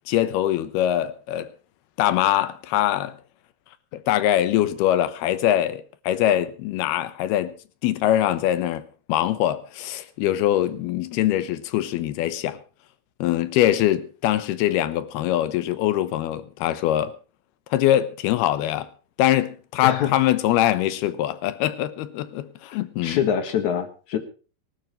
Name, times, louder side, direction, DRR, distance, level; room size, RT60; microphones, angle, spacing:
voice 1, 0.1-1.5 2.0-3.2 3.9-7.5 7.8-12.6 13.2-17.1 17.7-18.9 19.2-23.2, left 12 dB, 85° left, 3.0 m, -23 dB
voice 2, 19.8-20.1 23.0-24.2, left 9 dB, 60° left, 2.5 m, -24 dB
25.0 x 12.0 x 3.1 m
omnidirectional pair, 4.5 m